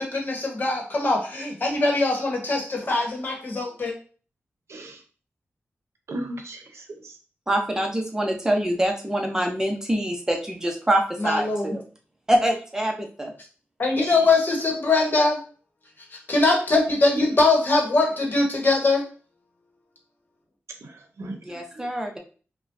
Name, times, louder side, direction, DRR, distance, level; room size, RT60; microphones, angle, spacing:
voice 1, 0.0-3.9 11.2-11.8 13.8-15.4 16.3-19.0, left 3 dB, 45° left, -1 dB, 1.1 m, -22 dB
voice 2, 4.7-5.0 6.1-7.2 14.0-14.2 17.1-17.3 20.8-21.9, right 1 dB, 85° right, 5 dB, 0.7 m, -35 dB
voice 3, 7.5-11.8 12.3-13.3 21.4-22.2, right 1 dB, 15° right, 2 dB, 0.7 m, -25 dB
5.0 x 2.2 x 2.6 m, 0.39 s
wide cardioid pair, 125°, 5 cm